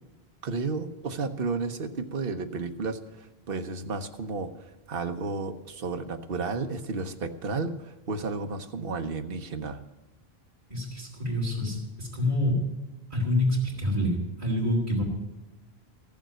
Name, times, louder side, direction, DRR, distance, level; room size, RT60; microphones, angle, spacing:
voice 1, 0.4-9.8, right 4 dB, 65° right, 7 dB, 1.1 m, -32 dB
voice 2, 10.7-12.6 13.1-15.0, left 1 dB, 40° right, -6 dB, 3.1 m, -27 dB
14.5 x 7.2 x 9.0 m, 1.1 s
omnidirectional pair, 1.1 m